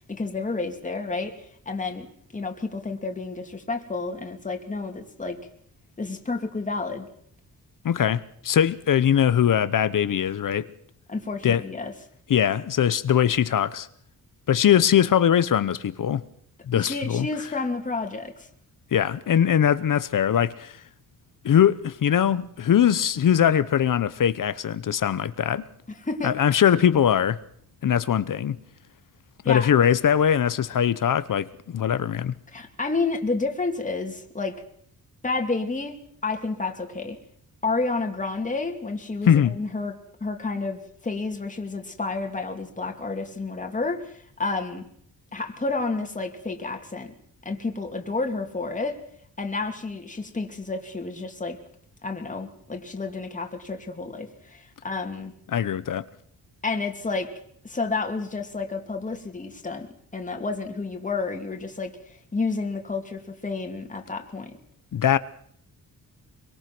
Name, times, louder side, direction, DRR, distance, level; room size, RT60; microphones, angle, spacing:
voice 1, 0.1-1.3 1.7-2.1 2.3-5.4 6.0-7.1 11.1-11.9 16.7-18.3 26.0-26.4 29.4-29.7 32.5-34.6 35.2-37.2 37.6-39.9 40.2-44.8 45.3-47.1 47.4-49.0 49.4-51.6 52.0-55.3 56.6-57.3 57.6-59.9 60.1-62.0 62.3-64.5, left 3 dB, 20° left, 2.5 m, -30 dB
voice 2, 7.8-10.7 11.4-11.6 12.3-13.9 14.5-16.2 16.7-17.3 18.9-20.8 21.4-25.6 26.2-27.4 27.8-28.6 29.4-32.3 39.3-39.6 55.5-56.1 64.9-65.2, left 9 dB, 55° left, 0.9 m, -21 dB
24.5 x 23.5 x 6.2 m
wide cardioid pair, 135°, 37 cm